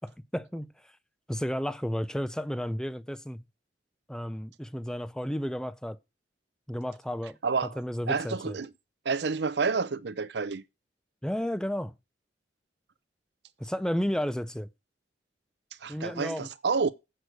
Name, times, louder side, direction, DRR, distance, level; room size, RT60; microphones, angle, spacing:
voice 1, 0.0-0.7 1.3-3.4 4.1-6.0 6.7-7.4 7.8-8.6 11.2-11.9 13.6-14.7 15.9-16.5, equal, 5° left, 0.5 m, -32 dB
voice 2, 7.4-7.8 8.1-8.7 9.0-10.6 15.8-16.9, right 4 dB, 65° right, 0.6 m, -29 dB
8.1 x 6.5 x 6.1 m
head